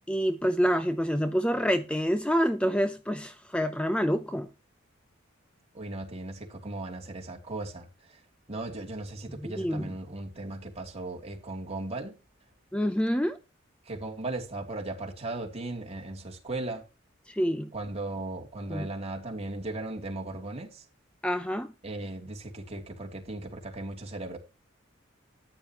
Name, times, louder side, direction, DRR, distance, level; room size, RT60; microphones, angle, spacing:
voice 1, 0.1-4.5 9.4-9.9 12.7-13.4 17.3-17.7 18.7-18.9 21.2-21.7, equal, 5° left, 0.5 m, -27 dB
voice 2, 5.7-8.2 8.5-12.2 13.8-16.8 17.7-20.8 21.8-24.4, right 2 dB, 30° right, 2.8 m, -37 dB
13.5 x 9.9 x 2.9 m
head